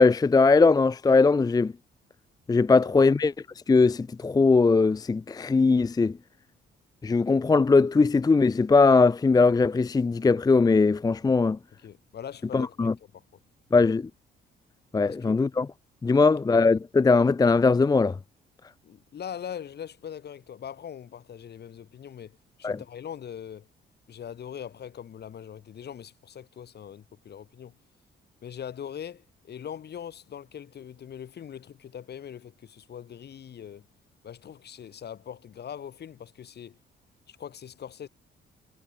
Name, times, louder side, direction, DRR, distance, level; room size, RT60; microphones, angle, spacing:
voice 1, 0.0-1.7 2.5-3.3 3.7-6.1 7.0-11.6 12.5-12.9 13.7-14.0 14.9-15.7 16.0-18.1 22.6-22.8, left 4 dB, 20° left, 0.5 m, -20 dB
voice 2, 11.8-13.2 15.0-15.4 16.1-16.4 18.8-23.7 24.1-27.7 28.4-33.8 34.2-36.8 37.3-38.1, left 9 dB, 55° left, 2.5 m, -41 dB
cardioid pair, 90°, 20 cm